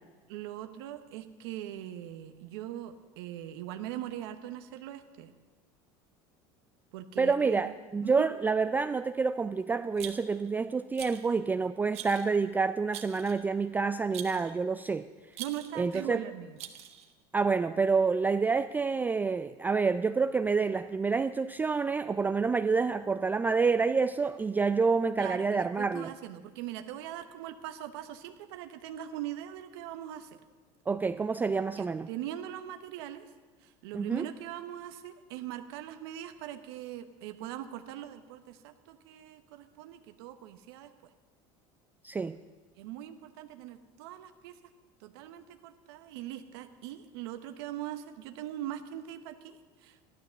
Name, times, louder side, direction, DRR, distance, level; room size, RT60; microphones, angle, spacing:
voice 1, 0.3-5.3 6.9-7.7 8.0-8.3 15.4-16.6 25.2-30.4 31.8-33.3 33.6-40.9 42.8-44.6 45.0-50.1, right 12 dB, 85° right, 8 dB, 0.9 m, -41 dB
voice 2, 7.2-15.1 15.8-16.2 17.3-26.1 30.9-32.1 33.9-34.3 42.0-42.4, right 4 dB, 15° right, 11 dB, 0.3 m, -28 dB
Rattle, 10.0-10.5 11.0-11.3 11.9-12.3 12.9-13.5 14.1-14.5 15.3-15.8 16.6-17.1, right 11 dB, 55° right, 1.1 m, -43 dB
12.5 x 12.0 x 6.9 m, 1.3 s
supercardioid pair, 120°, 13 cm